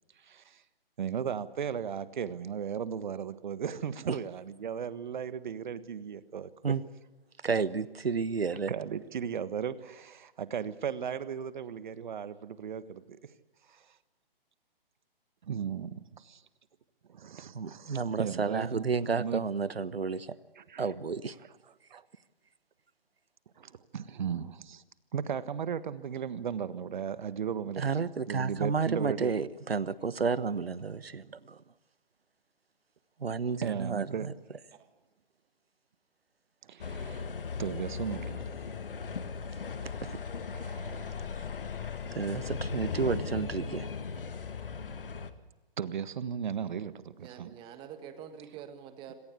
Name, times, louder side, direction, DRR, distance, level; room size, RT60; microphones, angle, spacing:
voice 1, 0.2-0.6 1.0-6.7 8.7-13.2 13.7-13.8 15.4-16.4 17.1-18.8 19.2-19.4 20.6-20.9 21.9-22.0 23.6-24.8 25.1-27.8 28.3-29.3 33.6-34.3 36.7-37.3 37.6-38.4 40.5-41.2 45.8-47.5, right 7 dB, 50° right, 15 dB, 1.5 m, -36 dB
voice 2, 7.4-8.7 17.5-20.3 20.8-21.3 27.8-31.6 33.2-34.3 39.8-40.2 42.1-43.9, right 5 dB, 85° right, 18 dB, 1.2 m, -31 dB
sound 1, 36.8-45.3, left 5 dB, 65° left, 1.8 m, -37 dB
voice 3, 47.2-49.1, right 9 dB, 15° right, 9 dB, 1.6 m, -46 dB
26.5 x 17.5 x 8.3 m, 1.1 s
figure-of-eight pair, 145°, 30 cm